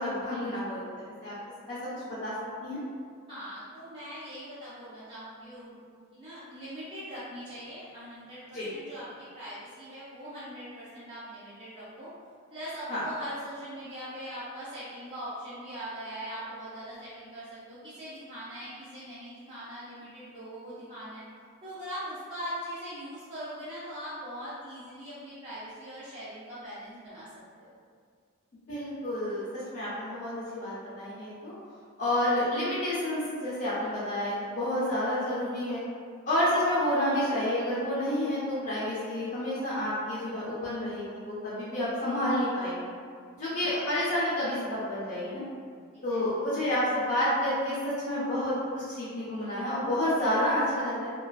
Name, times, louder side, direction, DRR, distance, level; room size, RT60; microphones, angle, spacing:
voice 1, 0.0-1.3 1.7-2.3 2.6-2.8 8.5-8.7 12.9-13.0 28.7-31.5 32.0-35.8 36.3-42.9 43.4-45.5 46.0-51.1, left 1 dB, 40° left, -11 dB, 0.5 m, -29 dB
voice 2, 3.3-5.7 6.1-12.1 12.5-21.2 21.6-27.3 27.6-27.7 43.6-43.9 46.1-46.2, equal, 20° right, -14 dB, 0.5 m, -41 dB
2.3 x 2.2 x 2.4 m, 2.1 s
head